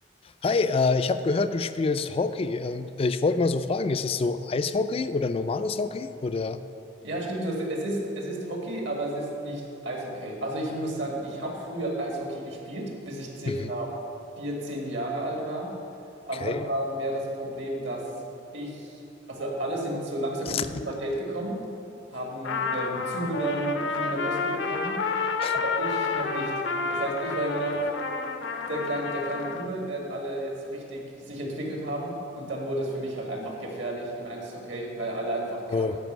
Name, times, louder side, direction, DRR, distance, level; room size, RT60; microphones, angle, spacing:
voice 1, 0.4-6.6 13.5-13.7 16.4-16.6 20.5-20.7 25.4-25.6 35.7-36.0, left 3 dB, 30° left, 11 dB, 0.3 m, -26 dB
voice 2, 7.0-13.9 14.4-15.7 16.3-18.0 18.5-19.0 19.3-21.6 22.1-25.0 25.5-26.5 26.9-27.9 28.7-35.9, right 1 dB, 70° right, 0 dB, 1.9 m, -32 dB
Trumpet, 22.4-29.7, left 4 dB, 70° left, 0.6 m, -30 dB
12.5 x 5.2 x 6.2 m, 2.8 s
head